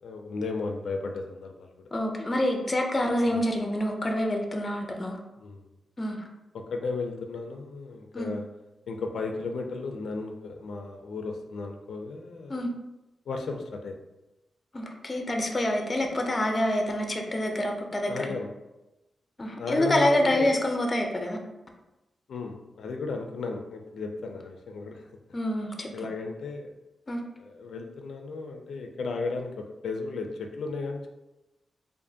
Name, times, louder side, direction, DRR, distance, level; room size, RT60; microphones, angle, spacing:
voice 1, 0.0-1.8 3.3-3.4 5.4-5.6 6.5-8.5 8.9-12.6 13.3-14.0 18.1-18.5 19.6-20.5 22.3-25.1 25.9-26.7 27.4-31.1, left 3 dB, 85° left, 4 dB, 0.4 m, -35 dB
voice 2, 1.9-5.2 6.0-6.2 8.1-8.4 12.5-12.7 14.7-18.3 19.4-21.4 25.3-25.9 27.1-27.2, left 1 dB, 25° left, 3 dB, 0.5 m, -27 dB
4.8 x 2.4 x 2.7 m, 1.0 s
wide cardioid pair, 140°, 0 cm